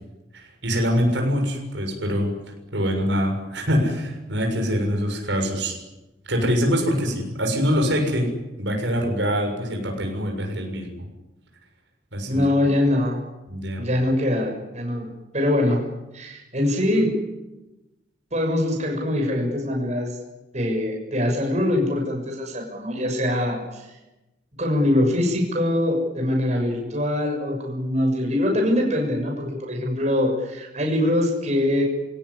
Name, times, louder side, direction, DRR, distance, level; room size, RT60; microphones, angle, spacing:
voice 1, 0.3-2.3 2.7-5.7 6.3-8.3 8.6-11.1 12.1-12.7 13.5-13.9, equal, 75° right, 2 dB, 6.9 m, -24 dB
voice 2, 12.3-13.2 13.8-15.1 15.3-15.8 16.1-17.1 18.3-20.2 20.5-24.0 24.6-31.8, left 1 dB, 40° right, 1 dB, 6.6 m, -23 dB
28.0 x 18.5 x 10.0 m, 1.0 s
head